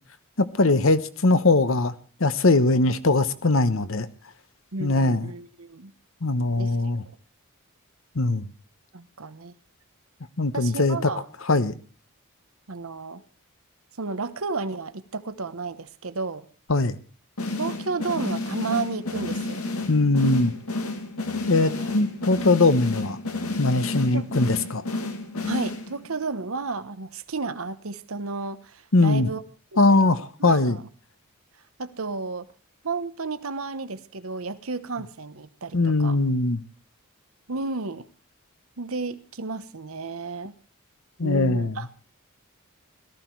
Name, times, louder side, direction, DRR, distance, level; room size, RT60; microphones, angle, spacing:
voice 1, 0.4-1.9 2.2-4.1 4.8-5.3 6.2-7.0 8.1-8.5 10.4-11.1 11.5-11.7 16.7-17.0 19.9-20.5 21.5-23.2 23.6-24.8 28.9-29.3 29.8-30.8 35.7-36.6 41.2-41.8, left 2 dB, 60° left, 13 dB, 1.1 m, -21 dB
voice 2, 4.7-5.9 6.6-6.7 8.9-9.5 10.5-11.2 12.7-13.2 14.0-16.5 17.6-19.6 21.6-21.9 24.1-24.3 25.4-29.4 29.7-30.0 30.4-30.8 31.8-32.5 32.8-36.2 37.5-38.1 38.8-40.5 41.2-41.9, right 4 dB, 75° right, 13 dB, 1.0 m, -32 dB
sound 1, 17.4-26.2, left 2 dB, 85° left, 2.2 m, -31 dB
18.0 x 14.0 x 4.6 m, 0.39 s
head